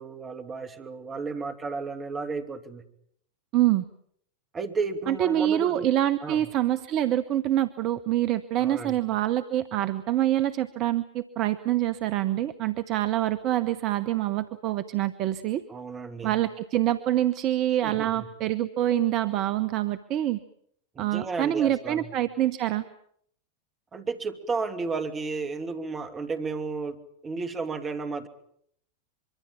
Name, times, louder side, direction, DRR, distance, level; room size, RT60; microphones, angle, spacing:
voice 1, 0.0-2.8 4.5-5.9 6.2-6.5 8.6-9.0 15.7-16.4 17.8-18.3 20.9-22.1 23.9-28.3, right 4 dB, 20° right, 7 dB, 2.6 m, -33 dB
voice 2, 3.5-3.8 5.1-15.6 16.2-20.4 21.0-22.8, right 13 dB, 40° right, 12 dB, 1.0 m, -26 dB
24.5 x 24.0 x 7.4 m, 0.68 s
figure-of-eight pair, 90°, 0 cm